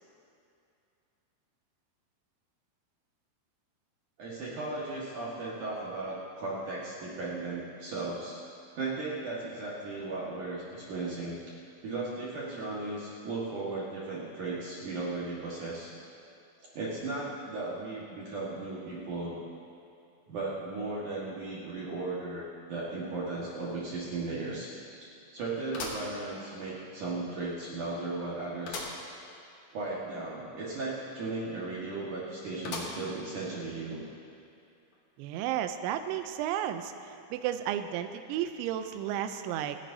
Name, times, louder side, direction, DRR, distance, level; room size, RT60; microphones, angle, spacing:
voice 1, 4.2-8.4 8.8-11.4 11.8-15.9 16.7-19.4 20.3-24.7 25.0-28.9 29.7-34.1, right 3 dB, 55° right, -7 dB, 2.4 m, -36 dB
sound 1, 23.5-23.6 24.0-24.1 25.7-26.8 27.3-27.4 28.7-29.1 29.5-29.6 29.8-29.9 32.6-33.3 33.8-33.9 34.9-35.0, left 3 dB, 85° left, 1.6 m, -39 dB
voice 2, 35.2-39.8, right 10 dB, 80° right, 8 dB, 2.9 m, -33 dB
29.5 x 10.5 x 2.7 m, 2.6 s
omnidirectional pair, 5.6 m